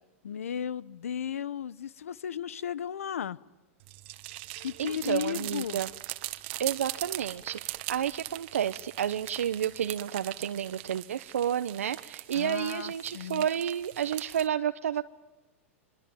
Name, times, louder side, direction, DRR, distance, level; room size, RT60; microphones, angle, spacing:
voice 1, 0.2-3.4 4.6-5.8 12.3-13.4, left 9 dB, 85° left, 19 dB, 1.0 m, -35 dB
sound 1, 3.8-14.5, right 19 dB, 55° right, 1.5 m, -41 dB
voice 2, 4.8-5.9 6.6-15.0, right 9 dB, 85° right, 9 dB, 0.9 m, -31 dB
26.0 x 23.0 x 9.1 m, 1.1 s
hypercardioid pair, 115°, 7 cm